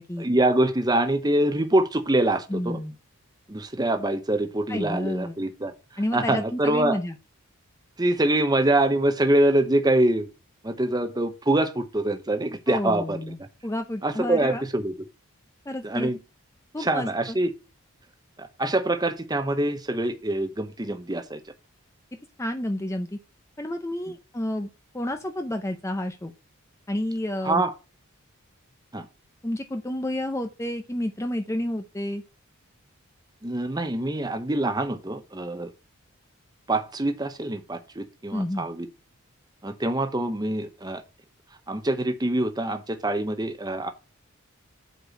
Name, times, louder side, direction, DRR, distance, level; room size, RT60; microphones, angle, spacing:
voice 1, 0.2-2.8 3.5-5.7 6.1-7.0 8.0-10.3 10.6-13.2 14.0-14.9 15.8-16.2 16.8-17.5 18.4-21.4 27.4-27.7 28.9-29.1 33.4-35.7 36.7-38.9 39.6-41.0 41.7-43.9, right 1 dB, 20° right, 0.8 m, -24 dB
voice 2, 2.5-2.9 4.7-5.4 6.0-7.1 12.7-13.4 13.6-14.6 15.7-16.1 16.7-17.4 22.4-23.2 23.6-24.7 24.9-26.3 26.9-27.6 29.4-32.2 38.3-38.7, left 1 dB, 15° left, 0.6 m, -30 dB
8.2 x 4.6 x 5.7 m
head